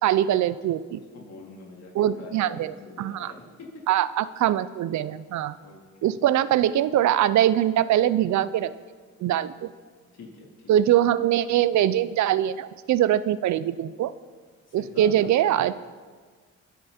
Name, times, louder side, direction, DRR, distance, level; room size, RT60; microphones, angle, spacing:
voice 1, 0.0-1.0 1.9-3.3 3.9-5.6 6.0-8.7 9.2-9.7 10.7-14.1 14.7-15.9, right 11 dB, 70° right, 16 dB, 0.6 m, -23 dB
voice 2, 1.1-3.9 5.6-6.1 10.1-10.7 14.7-15.6, left 3 dB, 60° left, -2 dB, 3.6 m, -45 dB
24.0 x 8.5 x 4.4 m, 1.5 s
cardioid pair, 90°, 30 cm